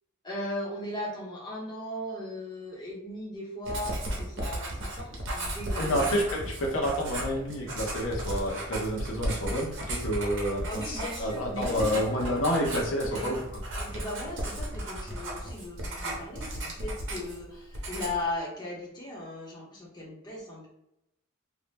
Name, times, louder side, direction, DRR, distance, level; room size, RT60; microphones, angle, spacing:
voice 1, 0.2-6.1 10.7-12.3 13.1-13.4 13.7-20.7, left 1 dB, 20° left, -5 dB, 0.8 m, -37 dB
Writing, 3.7-17.5 17.7-18.3, right 1 dB, 65° right, 0.8 m, -35 dB
voice 2, 5.8-13.6, equal, 75° left, -1 dB, 0.7 m, -29 dB
2.7 x 2.1 x 3.3 m, 0.85 s
head